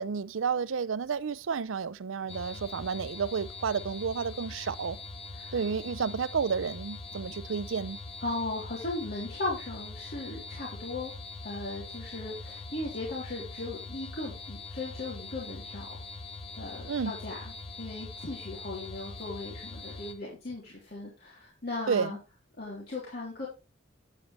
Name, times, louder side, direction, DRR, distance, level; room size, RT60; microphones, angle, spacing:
voice 1, 0.0-5.0 5.5-8.0 16.9-17.1 21.9-22.2, right 6 dB, 90° right, 0.5 m, -31 dB
sound 1, 2.3-20.1, left 3 dB, 30° left, 1.1 m, -43 dB
voice 2, 8.2-11.1 11.4-15.9 16.6-17.4 17.8-22.2 22.6-23.5, left 2 dB, 50° left, 3.3 m, -37 dB
9.3 x 8.7 x 3.2 m
head